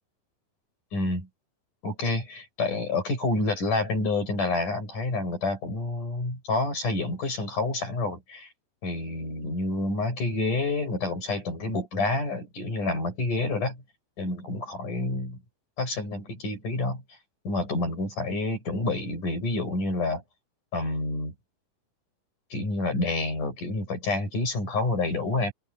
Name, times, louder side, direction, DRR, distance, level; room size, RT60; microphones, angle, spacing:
voice 1, 0.9-1.3 1.8-8.5 8.8-13.8 14.2-15.4 15.8-17.0 17.5-20.2 20.7-21.3 22.5-25.5, left 2 dB, 55° left, 9.1 m, -28 dB
omnidirectional pair, 4.4 m